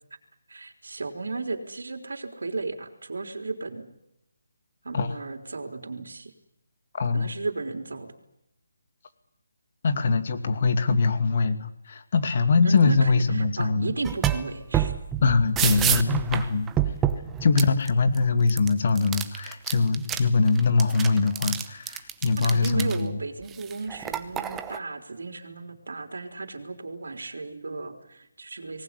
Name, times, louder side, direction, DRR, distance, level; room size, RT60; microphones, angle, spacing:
voice 1, 0.5-3.9 4.8-6.3 7.1-8.1 12.6-14.9 22.4-28.8, right 3 dB, 75° right, 5 dB, 3.8 m, -34 dB
voice 2, 6.9-7.3 9.8-13.9 15.2-16.7 17.4-23.1, left 4 dB, 45° left, 9 dB, 2.4 m, -22 dB
sound 1, 14.0-14.5 14.7-18.2 18.5-20.2 20.5-23.0 23.5-24.8, right 10 dB, 10° right, 0.9 m, -28 dB
25.0 x 19.0 x 9.9 m, 0.84 s
hypercardioid pair, 165°, 0 cm